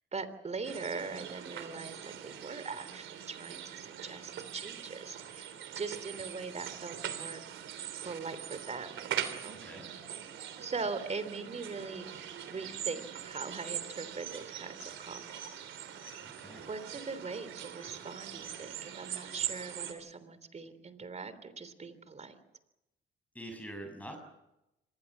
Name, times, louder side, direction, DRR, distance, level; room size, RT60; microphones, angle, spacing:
voice 1, 0.1-7.4 8.0-8.9 9.2-9.6 10.6-15.6 16.7-22.3, right 4 dB, 35° right, 13 dB, 3.3 m, -41 dB
sound 1, 0.6-19.9, right 10 dB, 75° right, 3.2 m, -42 dB
voice 2, 16.2-16.7 23.3-24.2, right 1 dB, 5° left, 4 dB, 6.8 m, -45 dB
26.0 x 20.0 x 7.4 m, 0.91 s
cardioid pair, 90°, 20 cm